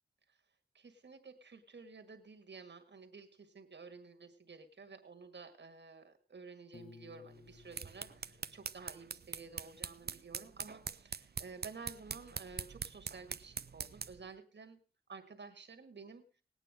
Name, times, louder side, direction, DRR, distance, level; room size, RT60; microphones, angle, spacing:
voice 1, 0.7-14.8 15.1-16.2, right 4 dB, 90° right, 6 dB, 1.7 m, -52 dB
Piano, 6.7-9.7, left 4 dB, 55° left, 1.3 m, -59 dB
sound 1, 7.5-14.3, right 6 dB, 65° right, 0.6 m, -44 dB
19.0 x 9.2 x 4.9 m, 0.37 s
wide cardioid pair, 55°, 18 cm